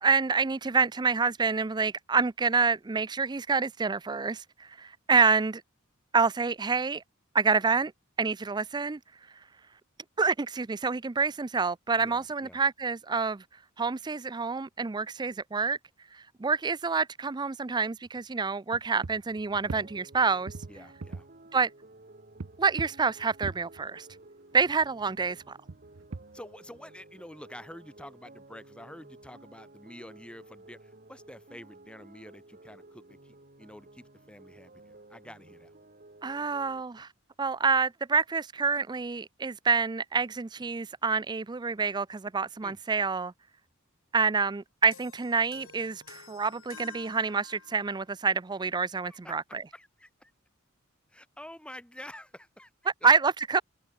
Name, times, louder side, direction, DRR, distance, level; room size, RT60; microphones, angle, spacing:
voice 1, 0.0-5.6 6.1-7.0 7.3-7.9 8.2-9.0 10.2-13.4 13.8-15.8 16.1-20.5 21.5-21.7 22.6-24.1 24.5-25.6 36.2-37.1 37.4-43.3 44.1-49.6 53.0-53.6, right 5 dB, 20° right, 0.4 m, -27 dB
voice 2, 12.0-12.6 20.7-21.3 26.3-35.8 42.6-42.8 49.1-50.3 51.1-52.7, left 1 dB, 5° left, 4.2 m, -48 dB
sound 1, 18.1-18.2 18.7-20.2 20.5-21.3 22.4-24.3 24.6-26.8, right 3 dB, 75° right, 0.7 m, -42 dB
sound 2, 19.7-36.8, right 2 dB, 45° right, 3.6 m, -54 dB
sound 3, 44.9-48.1, left 6 dB, 85° left, 2.9 m, -51 dB
head